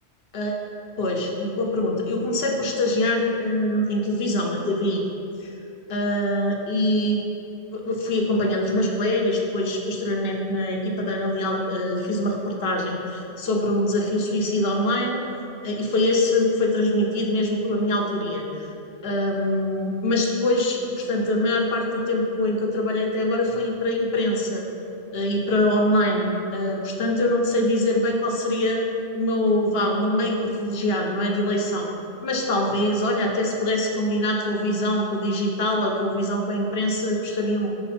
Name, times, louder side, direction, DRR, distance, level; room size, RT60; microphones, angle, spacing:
voice 1, 1.0-5.0 5.4-5.5 5.9-7.2 7.7-15.2 15.6-18.7 19.0-24.6 25.1-28.8 29.1-31.9 32.2-37.7, left 1 dB, 60° left, 0 dB, 1.0 m, -24 dB
6.9 x 4.6 x 4.2 m, 2.7 s
omnidirectional pair, 1.2 m